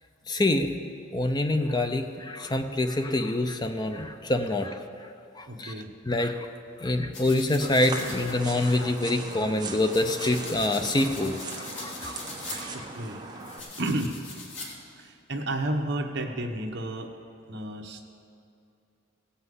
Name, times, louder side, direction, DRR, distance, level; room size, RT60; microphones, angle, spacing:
voice 1, 0.3-0.7 1.1-5.1 5.4-5.7 6.0-6.5 6.8-12.2 12.6-12.8, left 2 dB, 20° left, 6 dB, 0.6 m, -26 dB
voice 2, 5.5-5.9 12.7-13.2 13.8-14.2 15.0-17.1 17.5-18.0, right 1 dB, 60° right, 3 dB, 1.1 m, -31 dB
sound 1, 7.1-14.6, left 3 dB, 65° left, 2.8 m, -42 dB
sound 2, 7.6-13.6, right 3 dB, 20° right, 1.1 m, -39 dB
16.5 x 5.6 x 8.0 m, 2.6 s
head